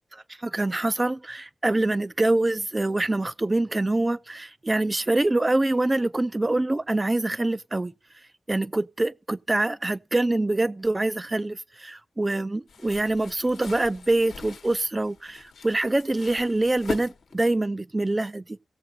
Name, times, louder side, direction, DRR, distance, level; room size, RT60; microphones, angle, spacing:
voice 1, 0.4-7.9 8.5-18.6, right 2 dB, 20° right, 0.4 m, -25 dB
sound 1, 12.7-17.7, left 6 dB, 85° left, 1.0 m, -41 dB
17.5 x 7.5 x 2.7 m
wide cardioid pair, 115°, 0 cm